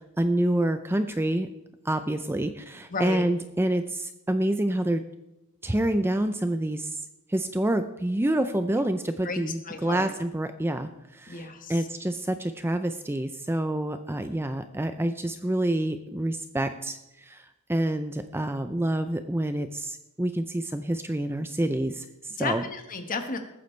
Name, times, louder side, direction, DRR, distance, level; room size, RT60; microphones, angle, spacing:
voice 1, 0.2-1.5 1.8-5.0 5.6-7.0 7.3-17.4 17.7-22.6, right 1 dB, 10° right, 9 dB, 0.5 m, -27 dB
voice 2, 2.9-3.2 9.2-10.1 11.3-11.9 22.4-23.4, left 3 dB, 40° left, 6 dB, 1.5 m, -33 dB
20.5 x 9.3 x 3.3 m, 0.93 s
head